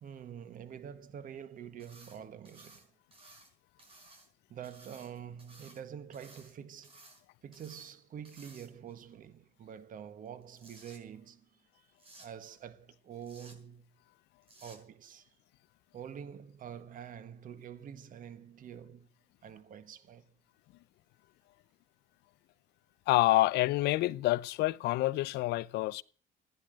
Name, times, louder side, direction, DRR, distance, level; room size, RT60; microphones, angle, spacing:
voice 1, 0.0-2.9 4.5-7.0 7.4-11.4 12.2-13.9 14.6-15.3 15.9-19.1 19.4-20.3, right 8 dB, 55° right, 1.4 m, -46 dB
sound 1, 1.8-2.2 2.5-3.5 3.8-4.3 4.6-5.8 6.1-6.5 6.8-7.2 7.5-7.9 8.3-8.9 10.3-11.0 12.0-12.3 13.2-13.6 14.4-14.8, right 2 dB, 35° right, 5.5 m, -56 dB
voice 2, 23.1-26.0, left 17 dB, 80° left, 0.7 m, -27 dB
15.5 x 10.5 x 7.7 m
cardioid pair, 110°, 17 cm